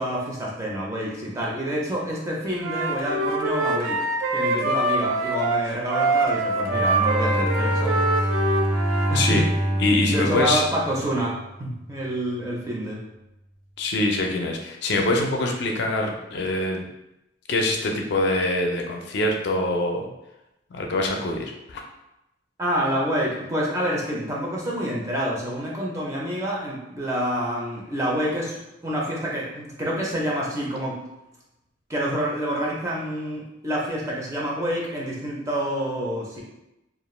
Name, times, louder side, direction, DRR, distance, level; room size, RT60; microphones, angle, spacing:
voice 1, 0.0-4.0 4.3-8.3 9.1-9.4 10.1-13.0 22.6-31.0 31.9-36.4, equal, 15° right, -4 dB, 0.4 m, -27 dB
Wind instrument woodwind instrument, 2.6-9.2, right 2 dB, 85° right, 0.4 m, -24 dB
Bowed string instrument, 6.6-11.6, right 1 dB, 65° right, 1.0 m, -26 dB
voice 2, 9.8-10.6 13.8-16.8 17.5-20.1 20.7-21.8, left 2 dB, 60° left, 1 dB, 0.4 m, -24 dB
2.4 x 2.1 x 3.1 m, 0.91 s
head